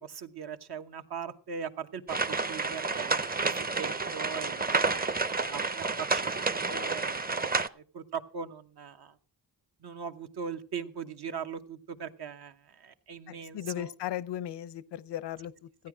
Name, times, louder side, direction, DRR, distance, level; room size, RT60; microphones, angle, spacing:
voice 1, 0.0-3.5 3.8-7.4 7.7-9.2 9.8-13.9 15.8-15.9, right 7 dB, 70° right, 1.0 m, -40 dB
sound 1, 2.1-7.7, right 3 dB, 25° right, 0.6 m, -30 dB
voice 2, 13.3-15.9, left 11 dB, 85° left, 0.6 m, -37 dB
14.5 x 9.6 x 4.9 m
cardioid pair, 75°, 41 cm